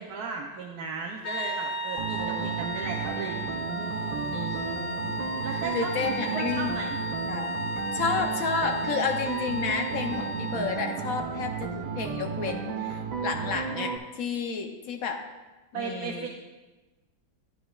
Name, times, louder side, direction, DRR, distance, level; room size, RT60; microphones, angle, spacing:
voice 1, 0.0-4.6 5.4-6.9 15.7-16.3, right 5 dB, 65° right, 0 dB, 1.0 m, -36 dB
sound 1, 1.2-11.2, equal, 90° left, 0.7 m, -34 dB
sound 2, 2.0-14.0, right 7 dB, 85° right, 1.5 m, -34 dB
voice 2, 2.2-2.7 4.3-5.4 5.7-6.8 7.2-7.7 7.9-15.2 15.7-16.3, left 5 dB, 60° left, 4 dB, 0.9 m, -31 dB
11.0 x 8.8 x 2.3 m, 1.2 s
omnidirectional pair, 2.1 m